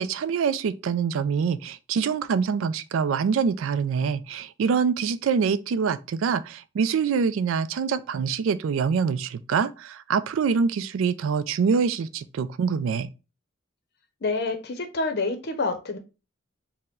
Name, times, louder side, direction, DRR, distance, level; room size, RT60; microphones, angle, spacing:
voice 1, 0.0-13.1, right 6 dB, 75° right, 0.3 m, -25 dB
voice 2, 14.2-16.0, left 3 dB, 50° left, 0.6 m, -27 dB
4.4 x 2.1 x 3.5 m
head